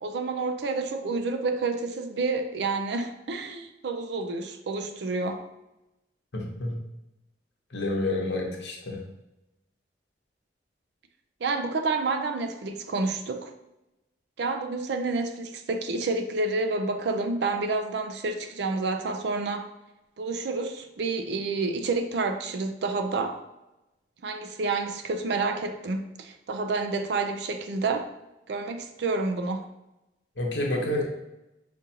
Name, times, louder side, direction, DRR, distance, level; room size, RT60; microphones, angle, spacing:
voice 1, 0.0-5.4 11.4-13.5 14.4-19.7 20.2-23.4 24.2-28.1 28.5-29.6, right 3 dB, 70° right, 5 dB, 0.4 m, -29 dB
voice 2, 6.3-6.8 7.7-9.0 30.4-31.0, left 1 dB, 90° left, 0 dB, 0.8 m, -29 dB
5.3 x 2.5 x 2.7 m, 0.94 s
head